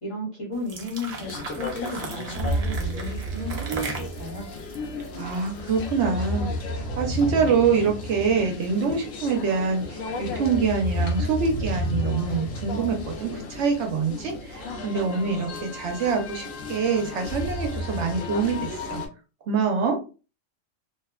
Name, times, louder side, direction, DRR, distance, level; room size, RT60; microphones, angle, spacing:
voice 1, 0.0-4.5, left 1 dB, 30° left, -4 dB, 1.0 m, -34 dB
sound 1, 0.5-5.8, right 3 dB, 45° right, 0.5 m, -37 dB
sound 2, 1.1-19.1, left 1 dB, 85° left, 1.0 m, -32 dB
voice 2, 5.2-19.0 19.5-20.0, right 5 dB, 70° right, 3 dB, 0.9 m, -25 dB
2.7 x 2.1 x 2.3 m, 0.33 s
omnidirectional pair, 1.3 m